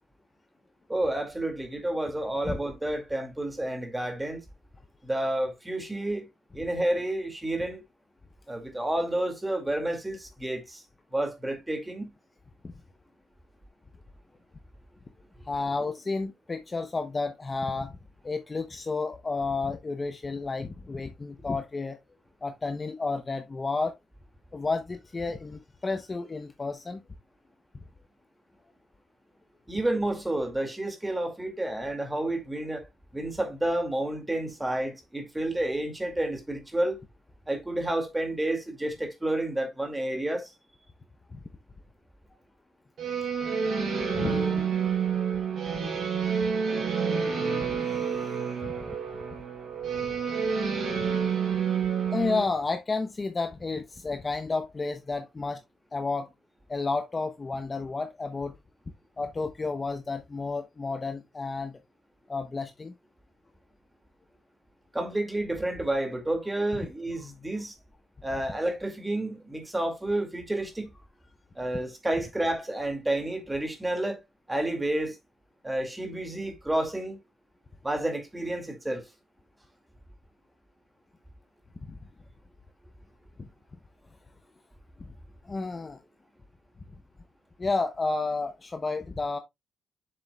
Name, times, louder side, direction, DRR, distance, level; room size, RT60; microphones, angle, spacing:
voice 1, 0.9-4.4 5.0-6.3 6.5-7.8 8.5-10.8 11.1-12.1 15.4-15.5 29.7-32.9 33.1-37.0 37.5-40.5 64.9-67.8 68.2-70.9 71.6-74.2 74.5-75.2 75.6-77.2 77.8-79.1, right 1 dB, 10° right, 2.2 m, -30 dB
voice 2, 15.5-18.0 18.2-22.0 22.4-24.0 24.5-27.0 41.3-41.4 44.1-44.6 47.9-49.0 52.1-55.6 55.9-56.3 56.7-58.6 59.2-61.8 62.3-62.9 81.9-82.0 83.4-83.5 85.0-85.1 85.4-86.0 87.6-89.4, left 3 dB, 20° left, 0.7 m, -31 dB
sound 1, 43.0-52.4, right 6 dB, 55° right, 3.9 m, -28 dB
7.6 x 6.7 x 2.3 m
cardioid pair, 145°, 0 cm